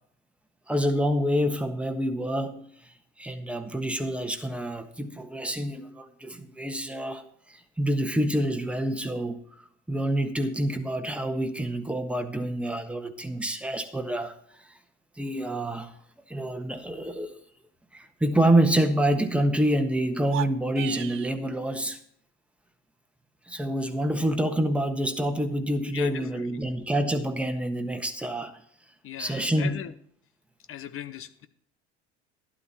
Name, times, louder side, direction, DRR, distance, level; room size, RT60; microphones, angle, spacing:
voice 1, 0.7-2.6 3.2-7.2 7.5-9.4 9.9-14.4 15.2-15.9 16.3-17.3 17.9-22.0 23.5-28.5 29.2-29.8, right 1 dB, 5° right, 1.4 m, -27 dB
sound 1, 20.2-21.4, right 13 dB, 40° right, 0.6 m, -35 dB
voice 2, 25.9-26.4 29.0-29.9 30.7-31.5, left 10 dB, 40° left, 1.0 m, -39 dB
12.0 x 11.0 x 4.3 m
figure-of-eight pair, 65°, 34 cm